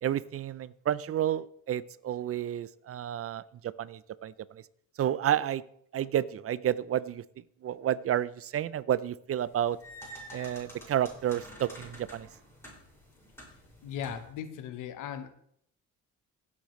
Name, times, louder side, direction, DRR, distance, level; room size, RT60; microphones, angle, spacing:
voice 1, 0.0-4.6 5.0-5.6 5.9-7.2 7.6-9.8 10.3-12.3, right 11 dB, 50° right, 19 dB, 0.5 m, -31 dB
sound 1, 9.4-14.4, equal, 10° left, 5.5 m, -49 dB
voice 2, 13.8-15.3, left 9 dB, 90° left, 9 dB, 1.2 m, -38 dB
16.5 x 8.6 x 3.2 m, 0.68 s
cardioid pair, 90°, 30 cm